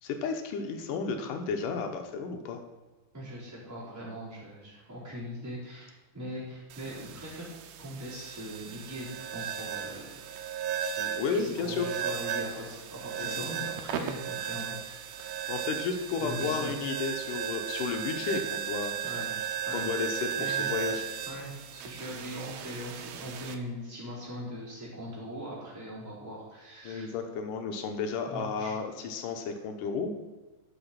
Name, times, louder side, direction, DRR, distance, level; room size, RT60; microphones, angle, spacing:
voice 1, 0.0-2.6 11.0-11.9 13.2-13.3 15.5-19.0 19.7-21.2 26.8-30.1, left 5 dB, 75° left, 5 dB, 2.2 m, -33 dB
voice 2, 3.1-7.5 7.8-10.3 11.3-14.8 15.3-15.7 16.2-16.7 19.0-19.3 19.6-19.9 20.4-20.7 21.2-27.1 28.2-28.7, equal, 5° right, -8 dB, 3.4 m, -41 dB
sound 1, 6.7-23.5, right 8 dB, 85° right, 2.6 m, -36 dB
12.0 x 5.9 x 5.8 m, 1.2 s
omnidirectional pair, 4.4 m